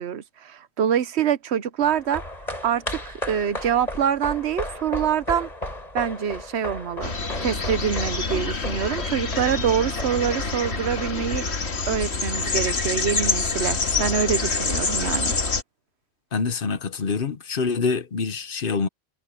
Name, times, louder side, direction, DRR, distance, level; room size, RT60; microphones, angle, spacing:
voice 1, 0.0-2.2 2.6-5.5 5.9-7.1 7.4-11.4 11.9-15.3, right 8 dB, 85° right, 1.1 m, -25 dB
sound 1, 1.8-12.4 12.7-12.8, left 1 dB, 35° left, 4.6 m, -35 dB
sound 2, 7.0-15.6, left 4 dB, 80° left, 2.0 m, -26 dB
voice 2, 16.3-18.9, left 5 dB, 60° left, 1.1 m, -26 dB
omnidirectional pair, 1.1 m